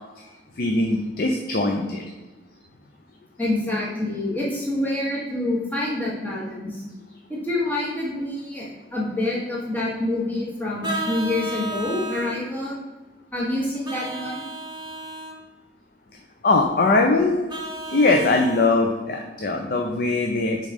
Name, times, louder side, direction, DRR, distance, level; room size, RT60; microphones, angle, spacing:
voice 1, 0.6-2.0 16.4-17.5 17.9-20.6, left 3 dB, 55° left, 2 dB, 0.5 m, -21 dB
voice 2, 3.4-6.8 7.3-12.8 13.3-14.4, left 1 dB, 10° left, -6 dB, 1.4 m, -27 dB
Vehicle horn car horn honking, 10.8-12.4 13.8-15.3 17.5-18.7, right 1 dB, 25° right, 0.8 m, -33 dB
5.3 x 3.8 x 5.1 m, 1.2 s
head